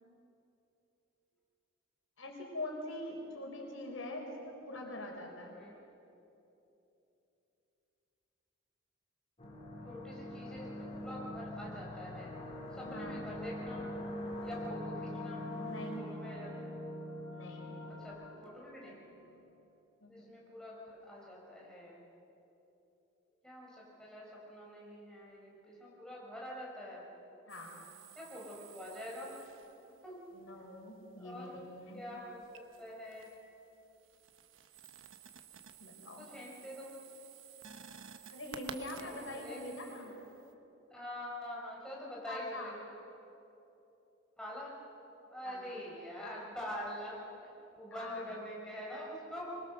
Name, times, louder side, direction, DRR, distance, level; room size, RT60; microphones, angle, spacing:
voice 1, 2.2-5.6 12.8-13.2 15.6-16.1 17.3-17.8 20.0-20.2 27.5-27.9 30.3-32.0 35.8-36.3 38.3-40.1 42.3-42.8 45.4-45.8 47.9-48.4, left 1 dB, 90° left, 1 dB, 4.2 m, -44 dB
sound 1, 9.4-19.1, left 1 dB, 35° left, 3.8 m, -43 dB
voice 2, 9.8-10.7 11.0-12.3 12.8-13.9 14.4-15.4 15.9-16.7 17.9-18.1 18.4-18.9 20.1-22.0 23.4-27.1 28.1-29.3 30.0-30.2 31.2-31.5 31.9-33.3 36.2-36.9 39.0-39.6 40.9-42.7 44.4-44.7 45.3-49.6, left 1 dB, 5° left, -5 dB, 5.4 m, -45 dB
sound 2, 27.5-30.0 32.4-33.5 33.8-40.5, right 7 dB, 80° right, 1.1 m, -53 dB
24.5 x 21.5 x 6.7 m, 3.0 s
head